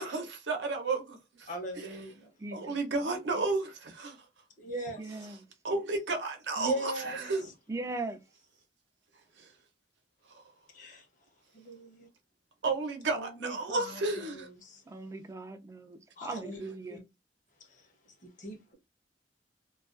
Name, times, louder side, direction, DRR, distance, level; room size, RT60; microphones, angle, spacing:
voice 1, 0.0-1.5 1.8-2.0 2.5-4.2 5.6-7.5 9.4-9.5 12.6-14.5, right 3 dB, 90° right, 0.7 m, -32 dB
voice 2, 1.5-2.3 4.6-5.0 6.6-7.3 10.7-11.0 11.5-12.1 13.1-14.8 16.2-16.6 16.9-17.0 17.7-17.8 18.4-18.7, right 1 dB, 45° left, 0.8 m, -39 dB
voice 3, 2.4-2.8 5.0-5.5 7.7-8.2 14.9-17.1, right 3 dB, 15° right, 0.3 m, -39 dB
2.3 x 2.2 x 2.3 m
head